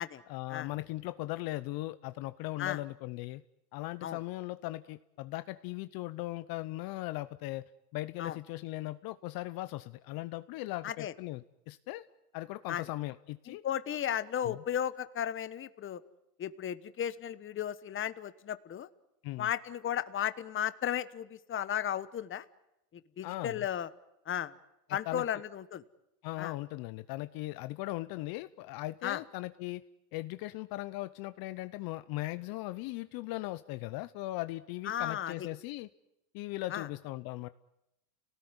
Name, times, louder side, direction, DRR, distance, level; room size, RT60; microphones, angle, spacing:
voice 1, 0.3-3.4 3.7-12.0 12.3-13.6 14.4-14.6 19.2-19.5 23.2-23.7 24.9-25.2 26.2-29.8 30.1-35.9 36.3-37.5, left 18 dB, 50° left, 13 dB, 0.9 m, -38 dB
voice 2, 13.5-16.0 16.4-18.9 19.4-22.4 23.2-23.9 24.3-24.5 24.9-25.8 26.4-26.5 29.0-29.2 34.9-35.3 36.7-36.9, left 10 dB, 25° left, 14 dB, 1.2 m, -34 dB
29.5 x 18.5 x 9.8 m, 0.87 s
supercardioid pair, 120°, 46 cm